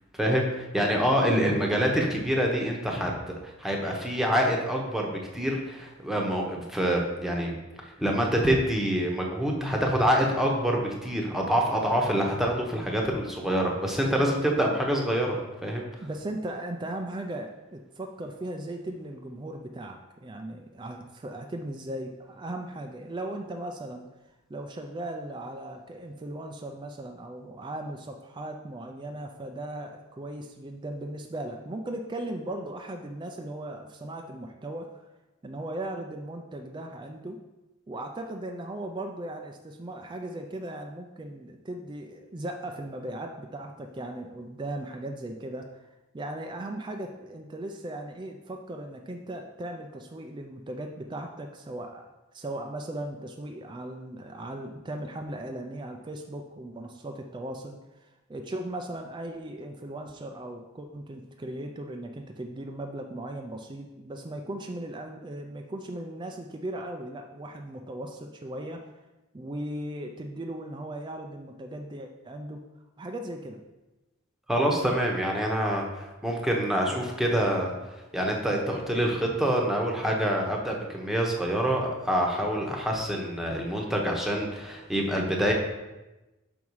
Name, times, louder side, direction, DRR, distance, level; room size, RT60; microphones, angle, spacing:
voice 1, 0.2-3.1 3.6-7.6 7.8-15.4 15.6-15.9 74.5-77.7 78.1-85.5, equal, ahead, -1 dB, 1.0 m, -26 dB
voice 2, 1.2-1.6 16.0-24.1 24.5-35.0 35.4-37.4 37.9-45.9 46.1-69.0 69.3-72.6 73.0-73.6, right 1 dB, 20° right, 3 dB, 0.4 m, -37 dB
6.0 x 5.4 x 4.7 m, 1.1 s
head